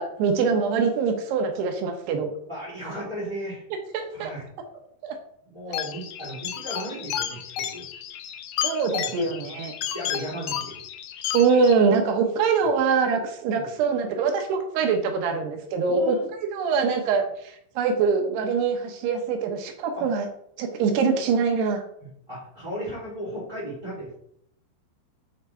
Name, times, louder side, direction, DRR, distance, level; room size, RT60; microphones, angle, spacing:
voice 1, 0.0-2.3 3.9-4.3 5.0-5.2 8.6-9.7 11.3-16.2 16.5-20.3 20.6-21.8, right 5 dB, 75° right, 4 dB, 3.1 m, -23 dB
voice 2, 2.4-3.6 4.1-4.5 5.4-7.9 9.1-9.3 9.9-10.8 13.5-13.7 15.9-16.3 20.0-20.1 22.0-24.2, right 1 dB, 10° right, -11 dB, 2.6 m, -35 dB
sound 1, 5.7-11.7, left 10 dB, 90° left, 2.1 m, -32 dB
7.5 x 5.8 x 4.4 m, 0.70 s
omnidirectional pair, 5.0 m